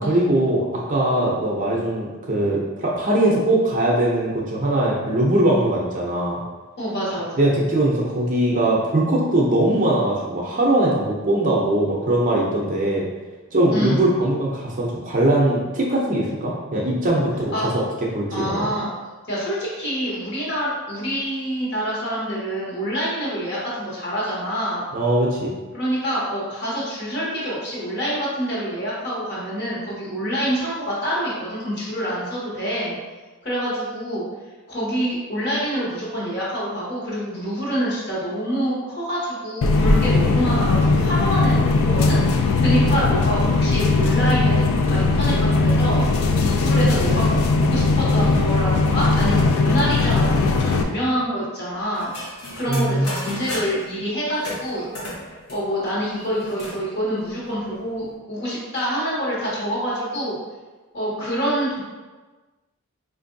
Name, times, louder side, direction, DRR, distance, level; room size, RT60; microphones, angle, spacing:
voice 1, 0.1-6.4 7.4-13.0 13.5-17.8 18.1-18.7 24.9-25.5 52.7-53.1, right 1 dB, 40° right, -4 dB, 0.5 m, -21 dB
voice 2, 6.8-7.4 13.7-14.1 17.5-17.7 18.3-18.9 19.3-24.8 25.7-33.0 33.4-34.3 34.7-52.1 52.5-54.9 55.5-60.4 60.9-61.8, equal, 50° left, -7 dB, 1.2 m, -26 dB
sound 1, 39.6-50.8, left 3 dB, 70° left, 0.3 m, -19 dB
sound 2, 51.9-53.9 54.4-56.8 57.2-57.3 57.5-58.1, left 1 dB, 85° left, 1.0 m, -34 dB
4.4 x 2.5 x 2.6 m, 1.3 s
head